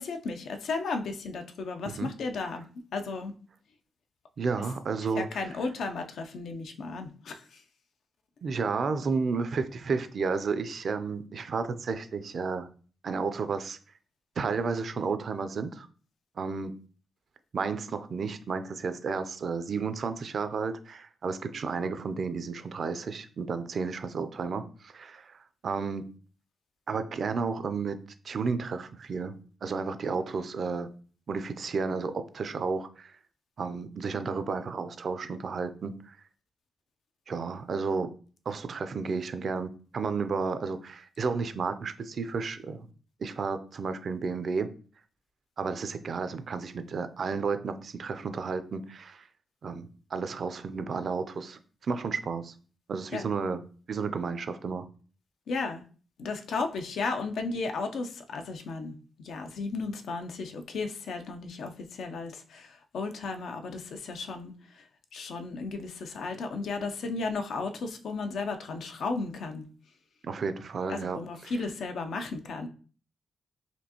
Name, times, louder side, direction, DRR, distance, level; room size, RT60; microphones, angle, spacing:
voice 1, 0.0-2.7 2.9-3.3 4.6-4.7 5.1-7.4 53.1-53.3 55.5-55.8 56.2-58.9 59.2-64.5 65.1-69.6 70.9-72.7, left 3 dB, 75° left, 6 dB, 0.5 m, -34 dB
voice 2, 4.4-5.6 8.4-12.7 13.0-13.8 14.4-15.9 16.4-16.7 17.5-26.1 26.9-28.0 28.2-29.4 29.6-30.9 31.3-33.1 33.6-36.2 37.3-38.1 38.5-42.9 43.2-44.7 45.6-49.3 49.6-52.5 52.9-53.6 53.9-54.9 70.2-71.6, right 4 dB, 60° right, 10 dB, 0.4 m, -32 dB
4.3 x 2.6 x 2.8 m, 0.40 s
cardioid pair, 75°, 0 cm